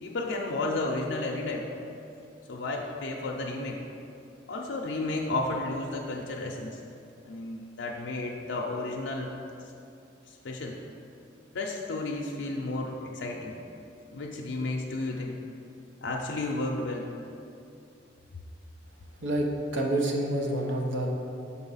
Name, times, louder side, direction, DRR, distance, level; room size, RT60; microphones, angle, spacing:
voice 1, 0.0-1.7 2.5-3.8 4.5-6.8 7.2-9.3 10.3-10.8 11.5-13.6 14.1-15.4 16.0-17.1, left 2 dB, 80° left, -1 dB, 0.5 m, -32 dB
voice 2, 19.2-21.1, right 1 dB, 85° right, 0 dB, 0.9 m, -28 dB
6.0 x 4.3 x 5.5 m, 2.6 s
head